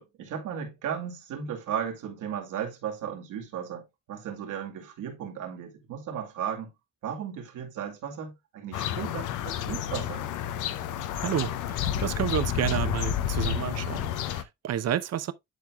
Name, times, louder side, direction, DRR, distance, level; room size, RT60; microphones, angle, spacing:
voice 1, 0.0-6.7 7.0-10.2, right 8 dB, 85° right, 2.5 m, -35 dB
sound 1, 8.7-14.4, left 10 dB, 85° left, 0.8 m, -30 dB
voice 2, 11.2-15.3, right 10 dB, 55° right, 0.7 m, -30 dB
10.5 x 4.6 x 2.3 m
cardioid pair, 90°, 30 cm